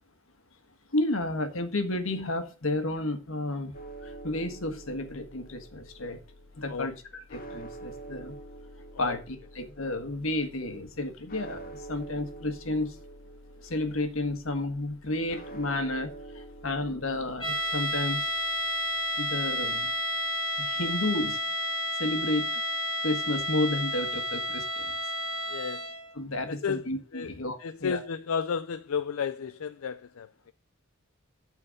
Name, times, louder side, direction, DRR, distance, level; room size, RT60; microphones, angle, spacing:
voice 1, 0.9-3.7 4.0-6.2 6.6-6.9 7.3-8.4 9.0-13.0 13.6-18.3 19.2-19.9 20.6-21.4 22.0-22.5 23.0-24.9 26.1-28.0, left 2 dB, 70° left, 1.6 m, -31 dB
sound 1, 3.7-21.6, right 2 dB, 45° left, 1.1 m, -47 dB
sound 2, 17.4-26.1, equal, 25° left, 2.1 m, -31 dB
voice 2, 25.5-25.8 26.5-26.8 27.1-27.3 27.6-30.3, left 6 dB, 90° left, 0.5 m, -32 dB
12.5 x 4.5 x 6.5 m
head